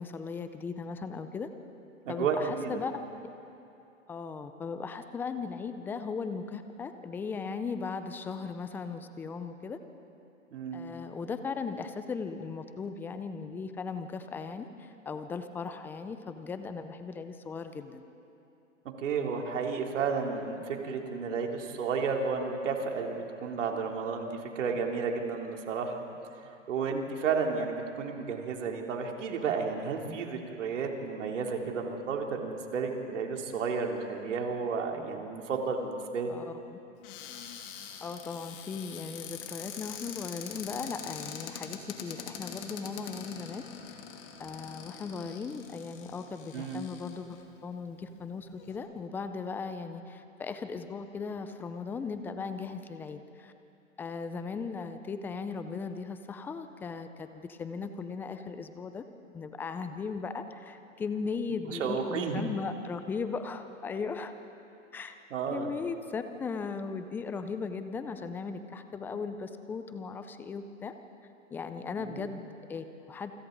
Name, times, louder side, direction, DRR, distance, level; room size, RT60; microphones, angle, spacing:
voice 1, 0.0-1.5 2.1-3.0 4.1-9.8 10.7-18.0 36.3-36.8 38.0-43.6 44.4-53.5 54.0-59.0 59.3-64.3 64.9-65.2 65.5-70.9 71.5-73.3, left 5 dB, 5° left, 9 dB, 0.4 m, -37 dB
voice 2, 2.0-2.8 10.5-10.9 19.0-26.0 26.7-36.3 46.5-46.8 61.7-62.4 65.3-65.7 72.0-72.3, right 5 dB, 65° right, 2 dB, 3.2 m, -32 dB
Cupboard open or close, 37.0-47.4 48.1-48.2 48.4-48.8, left 8 dB, 45° left, 2.8 m, -44 dB
28.0 x 26.0 x 4.0 m, 2.8 s
hypercardioid pair, 130°, 39 cm